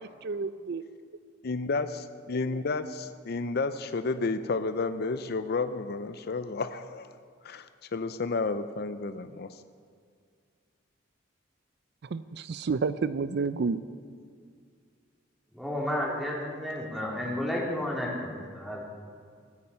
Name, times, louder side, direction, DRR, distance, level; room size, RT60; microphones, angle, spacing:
voice 1, 0.2-0.8 12.1-13.8, right 4 dB, 60° right, 14 dB, 0.4 m, -30 dB
voice 2, 1.4-7.1 7.4-9.6, left 3 dB, 55° left, 11 dB, 0.5 m, -31 dB
voice 3, 15.5-18.9, left 1 dB, ahead, -4 dB, 3.1 m, -32 dB
23.5 x 8.7 x 5.6 m, 2.2 s
head